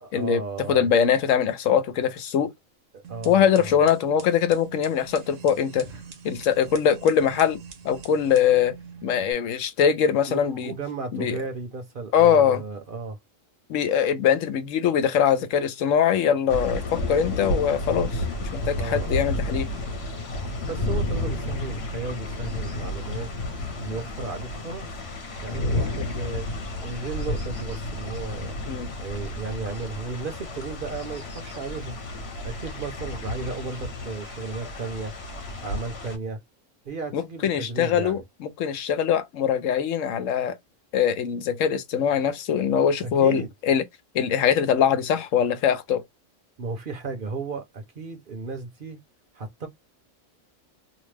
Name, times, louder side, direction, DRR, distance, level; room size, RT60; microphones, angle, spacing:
voice 1, 0.0-0.9 2.9-3.9 10.3-13.2 18.8-19.3 20.6-23.3 23.8-24.9 25.4-26.5 26.8-28.6 29.0-32.0 32.4-35.1 35.6-36.4 36.9-38.2 43.0-43.5 46.6-49.0 49.3-49.7, right 4 dB, 50° right, 0.8 m, -34 dB
voice 2, 0.7-2.5 3.2-5.9 6.2-7.6 7.8-8.8 9.0-10.7 11.1-11.4 12.1-12.6 13.7-19.7 25.8-25.9 28.7-28.9 37.1-40.6 40.9-43.8 44.1-46.0, left 8 dB, 80° left, 1.0 m, -22 dB
sound 1, 3.0-9.3, right 6 dB, 80° right, 1.2 m, -44 dB
sound 2, 16.5-36.2, left 1 dB, 55° left, 1.1 m, -31 dB
2.9 x 2.1 x 3.2 m
omnidirectional pair, 1.3 m